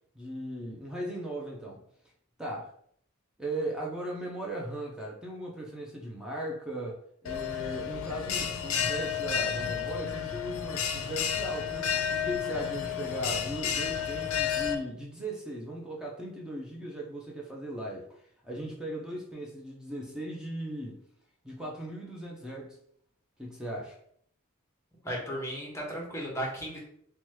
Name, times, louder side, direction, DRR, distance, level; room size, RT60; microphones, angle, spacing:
voice 1, 0.1-1.8 2.4-2.7 3.4-21.0 21.4-22.8 23.4-24.0, right 1 dB, 5° right, 0.4 m, -38 dB
Bell, 7.2-14.7, left 8 dB, 85° left, 0.4 m, -31 dB
voice 2, 25.0-26.8, equal, 15° left, 0.8 m, -35 dB
2.8 x 2.2 x 3.1 m
head